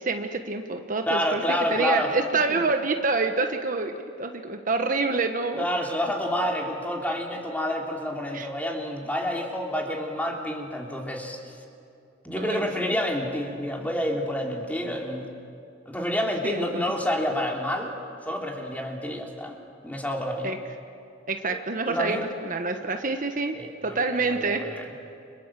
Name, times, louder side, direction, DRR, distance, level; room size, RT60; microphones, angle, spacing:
voice 1, 0.0-1.4 1.7-5.7 8.3-8.5 12.4-12.7 16.4-16.9 20.4-20.6 21.3-23.6 23.8-24.6, right 3 dB, 45° right, 5 dB, 1.3 m, -27 dB
voice 2, 1.1-2.1 2.5-2.6 5.6-11.4 12.2-15.3 15.9-17.9 18.2-19.6 19.8-20.5 21.9-22.2 23.5-24.9, equal, 10° left, 0 dB, 3.2 m, -29 dB
30.0 x 25.5 x 7.6 m, 2.6 s
head